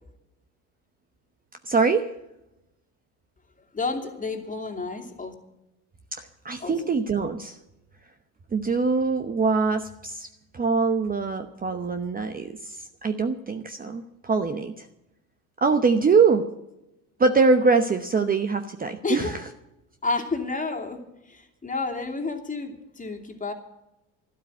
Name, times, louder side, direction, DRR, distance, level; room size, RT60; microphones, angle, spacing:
voice 1, 1.6-2.1 6.1-7.6 8.5-10.3 10.5-14.9 15.6-16.5 17.2-19.5, right 4 dB, 20° right, 8 dB, 0.9 m, -23 dB
voice 2, 3.7-5.3 6.6-7.0 19.0-19.4 20.0-21.0 21.3-23.5, left 3 dB, 20° left, 4 dB, 2.6 m, -30 dB
12.5 x 12.5 x 7.9 m, 0.92 s
supercardioid pair, 105°, 41 cm